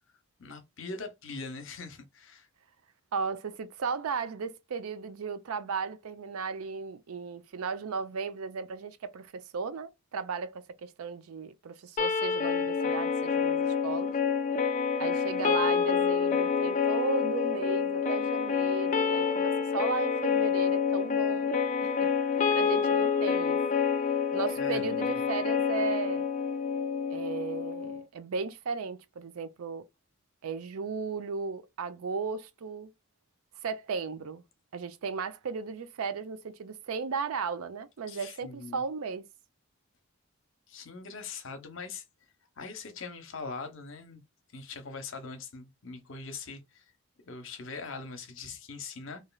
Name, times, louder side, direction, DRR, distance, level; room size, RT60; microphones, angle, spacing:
voice 1, 0.4-2.5 24.5-25.2 38.1-38.8 40.7-42.0 42.6-44.2 44.5-46.9 47.2-49.2, left 4 dB, 60° left, 0.7 m, -42 dB
voice 2, 3.1-14.1 15.0-22.1 22.5-23.6 24.3-26.3 27.1-29.8 30.4-32.9 33.6-34.4 34.7-39.2, right 5 dB, 75° right, 0.4 m, -35 dB
sound 1, 12.0-28.0, left 6 dB, 35° left, 0.3 m, -28 dB
3.0 x 2.5 x 2.2 m
head